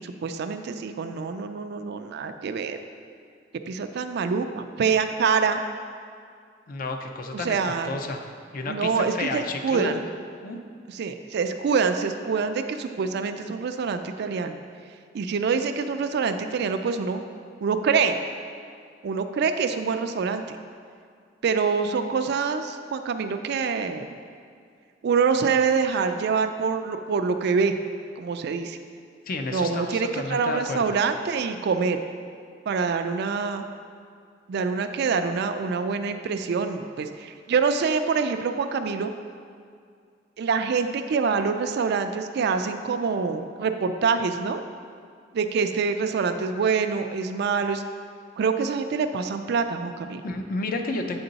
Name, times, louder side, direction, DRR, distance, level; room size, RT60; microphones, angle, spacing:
voice 1, 0.0-2.8 3.7-5.6 7.3-8.0 8.7-10.0 10.9-14.6 15.1-17.2 17.6-18.2 19.0-20.4 21.4-24.1 25.0-27.7 28.2-28.8 29.5-32.0 32.7-33.6 34.5-39.1 40.4-44.6 45.3-47.8 48.4-50.2, right 5 dB, 60° right, 8 dB, 0.3 m, -25 dB
voice 2, 6.7-8.2 8.5-10.0 10.4-10.6 29.3-30.8 50.2-51.2, left 2 dB, 50° left, 5 dB, 0.5 m, -31 dB
7.8 x 3.7 x 4.0 m, 2.2 s
head